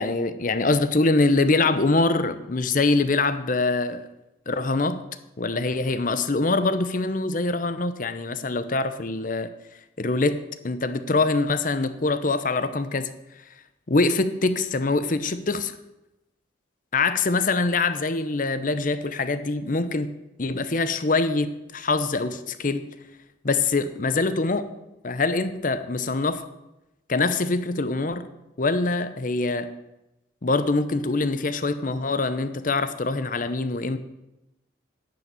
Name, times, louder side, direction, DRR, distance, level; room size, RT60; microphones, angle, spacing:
voice 1, 0.0-4.1 4.5-5.0 5.4-9.5 10.0-13.1 13.9-15.7 16.9-20.1 20.4-22.9 23.4-24.6 25.0-26.5 27.1-28.3 28.6-29.7 30.4-34.0, left 3 dB, 45° left, 12 dB, 0.7 m, -24 dB
10.5 x 6.9 x 8.7 m, 0.95 s
head